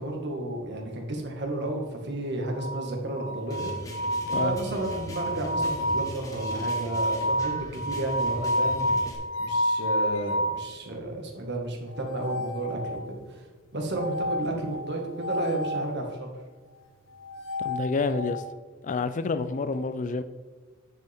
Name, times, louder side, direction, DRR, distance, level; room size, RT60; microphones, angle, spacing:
voice 1, 0.0-3.7 4.4-9.0 9.4-13.5 13.7-16.3, right 2 dB, 55° right, 1.8 m, -32 dB
sound 1, 2.5-10.7 11.9-13.2 13.9-15.9 17.1-18.5, equal, 65° left, 0.9 m, -30 dB
sound 2, 3.5-9.2, equal, 15° left, 1.5 m, -40 dB
voice 2, 17.6-18.4 18.8-20.2, left 4 dB, 35° left, 0.4 m, -28 dB
9.7 x 6.9 x 3.6 m
head